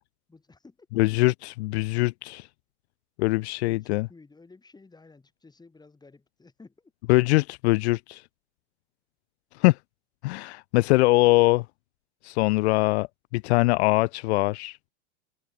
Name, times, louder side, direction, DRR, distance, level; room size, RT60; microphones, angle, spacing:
voice 1, 0.3-0.9 3.7-6.9, left 3 dB, 10° left, 4.5 m, -53 dB
voice 2, 1.0-2.5 3.2-4.1 7.1-8.2 9.5-9.8 10.2-11.7 12.2-13.1 13.3-14.8, left 22 dB, 65° left, 0.6 m, -22 dB
hypercardioid pair, 110°, 35 cm